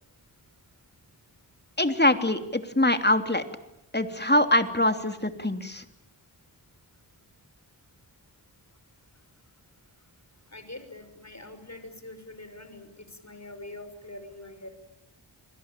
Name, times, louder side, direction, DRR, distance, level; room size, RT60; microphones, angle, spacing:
voice 1, 1.8-3.4 3.9-5.8, left 1 dB, 25° left, 8 dB, 3.0 m, -23 dB
voice 2, 10.5-14.7, left 2 dB, 40° left, 9 dB, 5.9 m, -44 dB
29.5 x 21.5 x 9.1 m, 0.84 s
cardioid pair, 40°, 44 cm